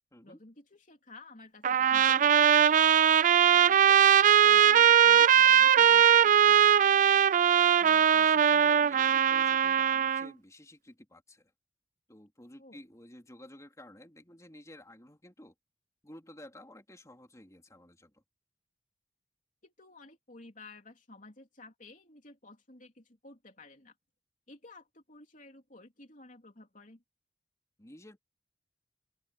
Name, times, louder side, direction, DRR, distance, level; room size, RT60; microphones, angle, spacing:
voice 1, 0.2-2.9 3.5-6.6 12.6-12.8 19.6-23.9 24.5-27.0, left 2 dB, 45° left, 3.3 m, -53 dB
Trumpet, 1.6-10.3, right 9 dB, 45° right, 0.4 m, -21 dB
voice 2, 7.5-11.5 12.1-15.5 16.0-18.2 27.8-28.2, left 1 dB, 20° left, 3.5 m, -52 dB
open air
head